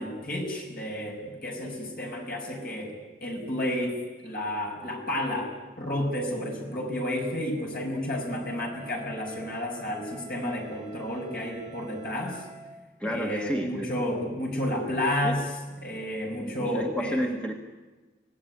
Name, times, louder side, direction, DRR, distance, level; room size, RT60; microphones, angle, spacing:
voice 1, 0.0-2.9 3.2-4.0 4.2-12.4 13.0-15.5 15.8-17.2, left 1 dB, 55° left, 1 dB, 6.0 m, -31 dB
Wind instrument woodwind instrument, 8.1-12.7, right 2 dB, 75° left, 7.2 m, -47 dB
voice 2, 13.0-13.9 15.2-15.4 16.4-17.5, equal, 5° left, 2 dB, 1.5 m, -31 dB
25.5 x 17.5 x 9.9 m, 1.3 s
head